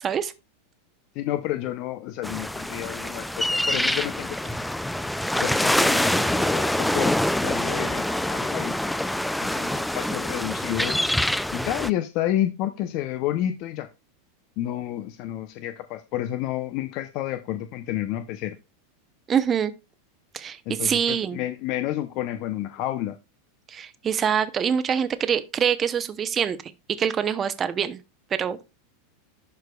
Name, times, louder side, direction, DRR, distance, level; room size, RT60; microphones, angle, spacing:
voice 1, 0.0-0.3 19.3-19.7 20.3-21.4 23.7-26.6 26.9-28.0 28.3-28.6, right 8 dB, 30° right, 0.8 m, -25 dB
voice 2, 1.2-4.6 5.4-7.2 7.4-8.9 9.4-11.0 11.5-13.9 14.6-18.6 20.7-23.2, left 13 dB, 55° left, 0.7 m, -30 dB
sound 1, 2.2-11.9, left 1 dB, 5° left, 0.4 m, -25 dB
11.5 x 4.6 x 2.3 m
hypercardioid pair, 100°, 0 cm